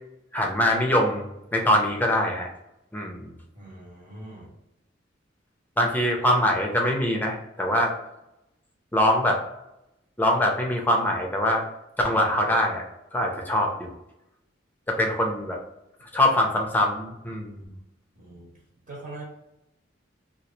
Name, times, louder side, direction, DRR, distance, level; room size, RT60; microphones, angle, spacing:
voice 1, 0.3-2.5 2.9-3.3 5.8-7.9 8.9-9.4 10.2-11.6 12.0-12.8 13.1-13.9 14.9-15.6 16.1-17.6, left 1 dB, 10° left, 0 dB, 0.6 m, -23 dB
voice 2, 3.5-4.5 18.1-18.5 18.9-19.2, right 2 dB, 45° right, -4 dB, 1.2 m, -42 dB
3.0 x 2.5 x 4.0 m, 0.88 s
head